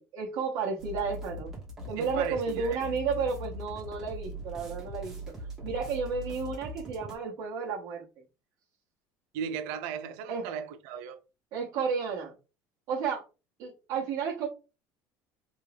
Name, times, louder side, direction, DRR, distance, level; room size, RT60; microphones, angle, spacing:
voice 1, 0.0-1.5 1.9-5.2 5.6-8.0 10.3-10.5 11.5-12.3 12.9-13.2 13.6-14.5, right 5 dB, 50° right, 1.0 m, -32 dB
sound 1, 0.8-7.1, equal, 5° right, 1.1 m, -41 dB
voice 2, 2.0-2.8 9.3-11.2, right 7 dB, 85° right, 0.6 m, -37 dB
3.6 x 2.4 x 3.3 m
cardioid pair, 160°, 7 cm